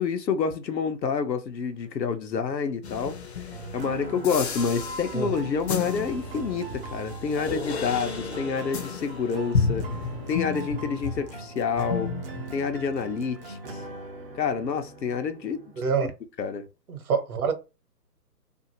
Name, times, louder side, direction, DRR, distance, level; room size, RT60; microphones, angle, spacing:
voice 1, 0.0-3.2 3.7-9.9 10.3-12.1 12.5-13.8 14.3-15.7 16.4-16.7, left 6 dB, 80° left, 0.8 m, -28 dB
sound 1, 2.8-11.5 11.8-12.9, left 5 dB, 40° left, 0.6 m, -33 dB
sound 2, 3.5-15.8, right 2 dB, 35° right, 0.6 m, -40 dB
voice 2, 15.8-16.1 16.9-17.5, right 5 dB, 60° right, 0.9 m, -26 dB
2.6 x 2.4 x 2.8 m
figure-of-eight pair, 140°, 50 cm